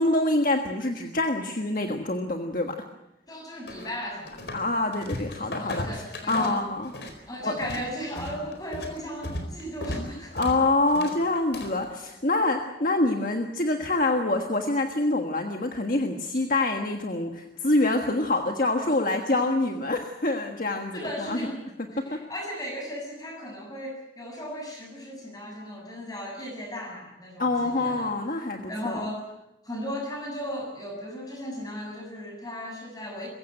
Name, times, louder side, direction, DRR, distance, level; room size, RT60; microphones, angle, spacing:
voice 1, 0.0-2.8 4.5-6.9 7.4-7.6 9.9-10.1 10.3-21.0 21.3-21.4 22.0-22.2 27.4-29.0, left 2 dB, 50° left, 3 dB, 1.5 m, -26 dB
voice 2, 3.3-4.4 5.6-6.6 7.3-10.4 20.9-21.6 21.9-28.1 28.7-29.3 29.6-33.3, equal, 20° left, 1 dB, 7.1 m, -36 dB
sound 1, 3.7-4.7 4.9-7.2 7.4-11.8, left 1 dB, 80° left, 4.4 m, -36 dB
23.0 x 15.5 x 8.8 m, 0.90 s
head